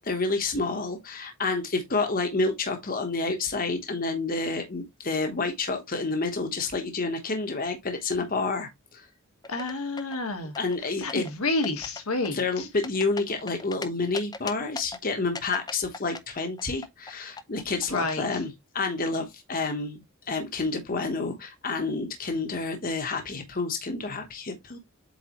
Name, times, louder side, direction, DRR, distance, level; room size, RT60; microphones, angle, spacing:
voice 1, 0.0-9.1 10.6-11.2 12.3-24.8, left 3 dB, 40° left, 1.1 m, -29 dB
sound 1, 9.4-10.2 10.6-11.3 11.6-12.0 12.3-13.9 14.1-15.0 15.4-17.1 17.4-18.4, left 4 dB, 20° left, 0.5 m, -38 dB
voice 2, 9.5-10.5 11.0-12.7 17.9-18.2, left 2 dB, 80° left, 1.5 m, -29 dB
7.9 x 4.0 x 3.0 m
head